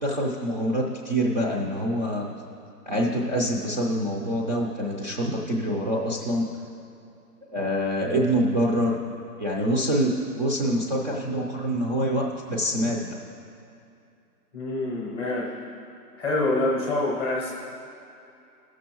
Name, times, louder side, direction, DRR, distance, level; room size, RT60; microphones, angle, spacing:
voice 1, 0.0-2.3 2.9-6.5 7.5-9.0 9.4-13.2, equal, 30° right, -2 dB, 0.5 m, -25 dB
voice 2, 14.5-15.5 16.2-17.5, left 2 dB, 15° left, -4 dB, 0.7 m, -26 dB
15.0 x 6.2 x 2.9 m, 2.6 s
hypercardioid pair, 150°, 49 cm